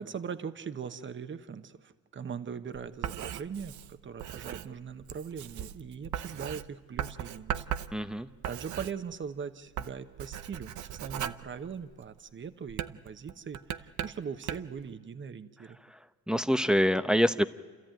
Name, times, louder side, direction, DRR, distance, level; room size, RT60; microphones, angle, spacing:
voice 1, 0.0-7.7 8.4-15.8, right 6 dB, 40° right, 10 dB, 1.2 m, -40 dB
Writing, 2.7-9.4 9.7-12.2 12.7-14.8, right 10 dB, 70° right, 0.8 m, -38 dB
voice 2, 7.9-8.3 16.3-17.4, equal, 5° right, 11 dB, 0.8 m, -25 dB
29.5 x 14.0 x 9.1 m, 1.5 s
cardioid pair, 90°, 30 cm